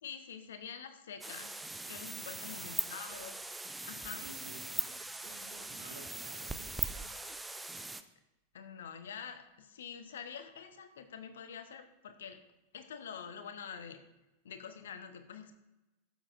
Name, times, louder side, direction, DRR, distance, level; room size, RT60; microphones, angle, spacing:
voice 1, 0.0-1.5 1.9-3.4 3.9-4.2 8.5-12.4 12.7-14.0 14.4-15.6, left 7 dB, 60° left, 8 dB, 0.9 m, -46 dB
sound 1, 1.2-8.0, right 2 dB, 5° right, 0.5 m, -40 dB
voice 2, 2.4-3.5 4.0-7.9, right 2 dB, 70° right, 2 dB, 2.2 m, -55 dB
12.5 x 7.4 x 2.5 m, 0.99 s
figure-of-eight pair, 90°, 0 cm